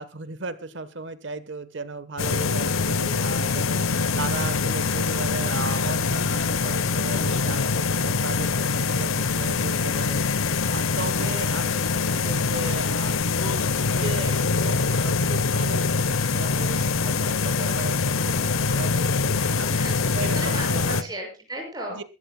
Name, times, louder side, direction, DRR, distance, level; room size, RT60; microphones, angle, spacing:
voice 1, 0.0-18.3 18.6-19.7 20.1-21.1 21.9-22.0, right 3 dB, 60° right, 13 dB, 1.1 m, -36 dB
sound 1, 2.2-21.0, left 4 dB, 90° left, 0.8 m, -24 dB
voice 2, 11.3-11.7 19.7-22.0, right 1 dB, 20° right, 1 dB, 6.3 m, -37 dB
23.5 x 13.0 x 2.2 m, 0.31 s
head